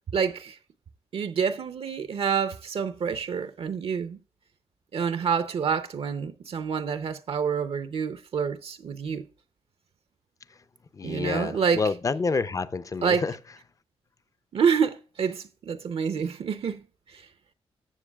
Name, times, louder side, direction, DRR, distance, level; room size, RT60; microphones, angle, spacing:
voice 1, 0.1-0.6 1.1-4.2 4.9-9.3 11.0-11.8 13.0-13.2 14.5-16.8 17.1-17.2, right 6 dB, 65° right, 0.6 m, -27 dB
voice 2, 10.9-13.4, left 4 dB, 30° left, 0.5 m, -28 dB
14.0 x 7.0 x 2.3 m
cardioid pair, 85°, 11 cm